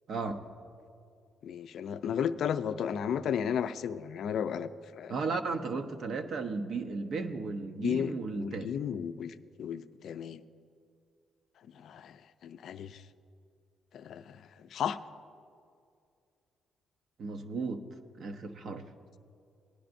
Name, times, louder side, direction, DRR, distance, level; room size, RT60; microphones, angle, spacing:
voice 1, 0.1-0.4 5.1-8.7 17.2-17.8 18.2-18.8, right 4 dB, 60° right, 6 dB, 0.7 m, -35 dB
voice 2, 1.4-5.1 7.8-10.4 11.7-13.0 13.9-15.0, left 8 dB, 70° left, 11 dB, 0.3 m, -34 dB
18.0 x 10.0 x 2.6 m, 2.4 s
cardioid pair, 90°, 0 cm